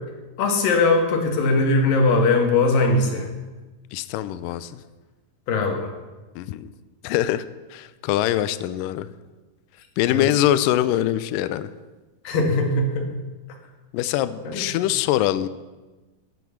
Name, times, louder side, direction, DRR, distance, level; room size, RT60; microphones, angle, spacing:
voice 1, 0.4-3.3 5.5-5.9 10.1-10.2 12.2-13.1 14.4-14.6, left 3 dB, 65° left, 2 dB, 3.4 m, -20 dB
voice 2, 3.9-4.8 6.4-6.7 7.0-7.4 7.7-9.1 10.0-11.7 13.9-15.5, left 12 dB, 90° left, 14 dB, 1.9 m, -23 dB
15.5 x 8.0 x 7.1 m, 1.2 s
omnidirectional pair, 4.5 m